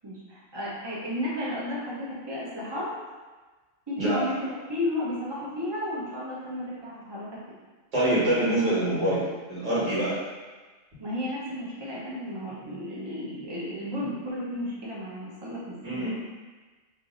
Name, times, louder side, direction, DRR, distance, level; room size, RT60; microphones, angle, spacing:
voice 1, 0.0-2.9 3.9-7.4 11.0-16.1, left 1 dB, 25° right, -7 dB, 0.8 m, -33 dB
voice 2, 7.9-9.2 9.5-10.1 15.8-16.1, right 1 dB, 65° right, -10 dB, 2.0 m, -25 dB
3.3 x 2.8 x 3.8 m, 1.3 s
omnidirectional pair, 1.3 m